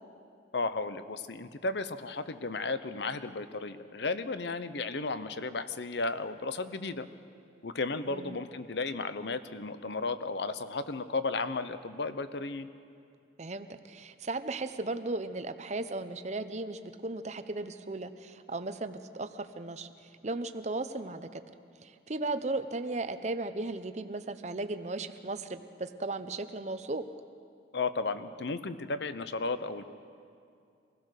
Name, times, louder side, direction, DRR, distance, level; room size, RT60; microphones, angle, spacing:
voice 1, 0.5-7.1 7.6-12.7 27.7-29.8, left 3 dB, 65° left, 12 dB, 0.8 m, -34 dB
voice 2, 8.1-8.4 13.4-21.4 21.8-27.0, right 2 dB, 35° right, 10 dB, 0.7 m, -36 dB
24.5 x 16.5 x 6.5 m, 2.4 s
head